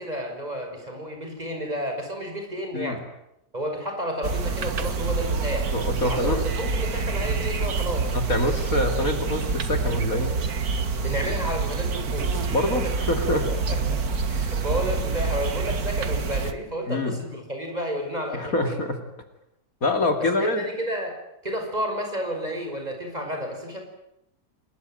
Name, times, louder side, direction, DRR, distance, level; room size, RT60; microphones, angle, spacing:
voice 1, 0.0-3.0 3.5-5.7 6.0-8.1 11.0-12.6 13.7-14.0 14.3-18.8 20.3-21.2 21.4-23.8, equal, 25° right, 3 dB, 6.3 m, -31 dB
sound 1, 4.2-16.5, right 4 dB, 65° right, 2.1 m, -27 dB
voice 2, 5.7-6.5 8.1-10.4 12.5-13.5 16.9-17.2 18.3-19.0 19.8-20.6, left 1 dB, 55° left, 6 dB, 2.9 m, -25 dB
28.5 x 20.5 x 9.3 m, 0.84 s
omnidirectional pair, 1.7 m